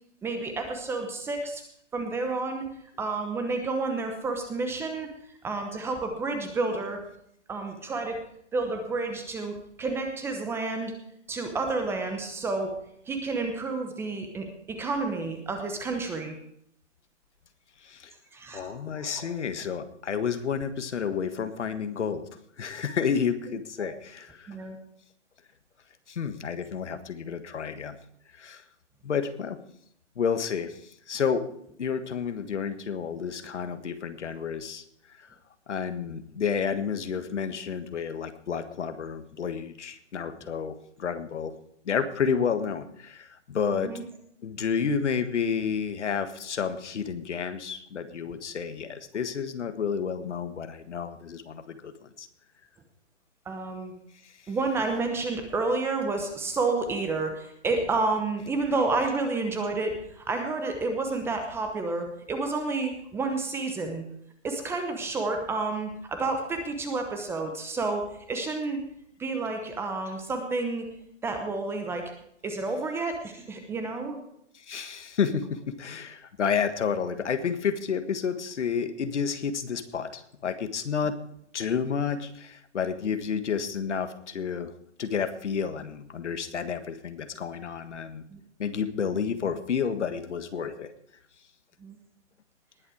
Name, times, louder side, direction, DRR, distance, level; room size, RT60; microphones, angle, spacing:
voice 1, 0.2-1.6 1.9-2.6 3.0-5.1 5.4-7.0 7.5-8.2 8.5-10.9 11.3-12.7 13.1-16.3 18.3-19.3 23.8-23.9 24.5-24.8 43.8-44.0 53.5-53.9 54.5-64.0 64.4-68.0 68.3-68.8 69.2-70.9 71.2-72.0 72.4-74.2 88.3-88.4 91.8-92.0, right 3 dB, 5° right, 5 dB, 0.9 m, -30 dB
voice 2, 17.8-18.1 18.5-22.2 22.6-24.6 26.1-28.0 28.3-28.6 29.0-29.6 30.1-31.5 31.8-34.8 35.2-35.3 35.7-41.5 41.8-43.9 44.4-52.3 54.2-54.3 74.5-81.2 81.5-84.7 85.0-88.2 88.6-90.9, left 6 dB, 70° left, 10 dB, 1.6 m, -30 dB
19.5 x 7.3 x 4.9 m, 0.72 s
hypercardioid pair, 150°, 36 cm